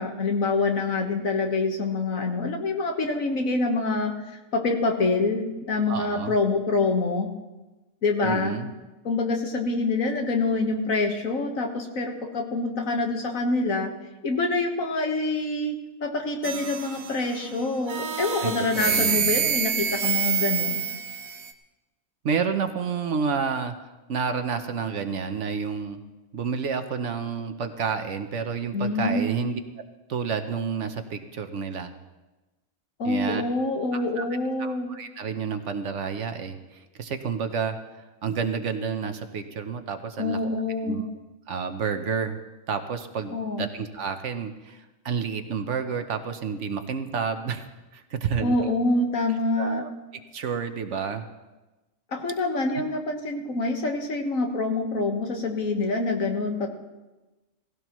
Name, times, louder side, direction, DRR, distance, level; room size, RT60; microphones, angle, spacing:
voice 1, 0.0-4.1 4.5-7.3 8.0-8.6 9.0-13.9 14.2-15.8 16.0-20.8 28.7-29.4 33.0-34.9 40.2-41.0 43.3-43.7 48.4-49.8 52.1-56.7, left 3 dB, 75° left, 3 dB, 1.8 m, -26 dB
voice 2, 5.9-6.3 8.2-8.7 18.4-19.3 22.2-23.7 24.1-26.0 26.3-29.6 30.1-31.9 33.0-33.4 33.9-34.2 34.6-37.8 38.2-40.4 40.8-41.0 41.5-42.4 42.7-47.7 47.9-48.6 49.6-49.9 50.3-51.3, right 6 dB, 60° right, 8 dB, 1.1 m, -30 dB
ambienta-soundtrack heishere-nooil, 16.4-17.4 17.9-21.5, right 8 dB, 80° right, 1.3 m, -27 dB
18.0 x 16.0 x 3.1 m, 1.1 s
omnidirectional pair, 1.4 m